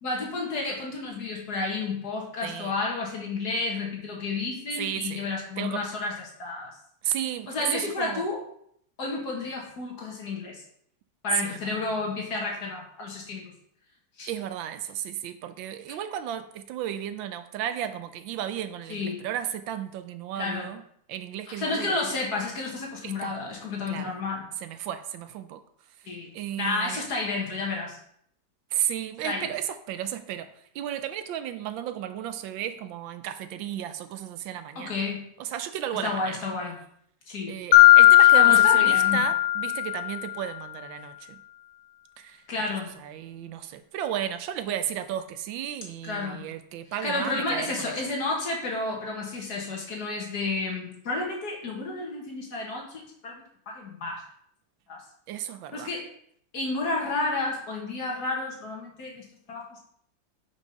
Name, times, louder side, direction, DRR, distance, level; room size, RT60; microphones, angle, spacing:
voice 1, 0.0-6.7 7.5-8.4 9.0-10.6 11.2-13.5 14.2-14.3 15.9-16.0 18.9-19.3 20.4-20.7 21.5-24.5 26.1-26.3 26.6-28.0 29.2-29.5 34.8-35.3 35.9-36.8 37.3-37.6 38.2-39.3 42.5-43.0 46.0-46.5 47.0-54.2 54.9-55.0 55.7-56.1 56.5-59.9, left 3 dB, 55° left, -1 dB, 1.9 m, -31 dB
voice 2, 2.4-2.7 4.8-5.3 5.6-5.8 7.0-8.3 11.3-11.8 14.3-20.8 21.1-22.0 23.0-23.4 23.9-24.1 24.6-25.6 26.3-27.0 28.7-30.5 30.7-35.0 35.4-36.4 37.5-41.4 42.2-42.4 43.0-47.9 55.3-55.9, right 10 dB, 85° right, 10 dB, 1.4 m, -33 dB
Mallet percussion, 37.7-40.3, left 15 dB, 85° left, 0.7 m, -16 dB
5.5 x 5.0 x 5.2 m, 0.68 s
omnidirectional pair, 2.0 m